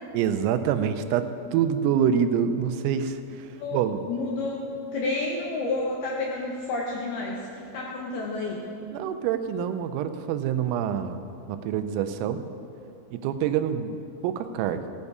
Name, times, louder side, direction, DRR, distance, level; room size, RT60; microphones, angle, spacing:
voice 1, 0.1-4.1 8.9-11.2 11.5-12.4 13.1-14.8, right 8 dB, 90° right, 9 dB, 3.3 m, -26 dB
voice 2, 4.1-4.6 4.9-8.6, left 3 dB, 80° left, -2 dB, 2.3 m, -30 dB
15.5 x 9.7 x 4.9 m, 2.6 s
omnidirectional pair, 5.9 m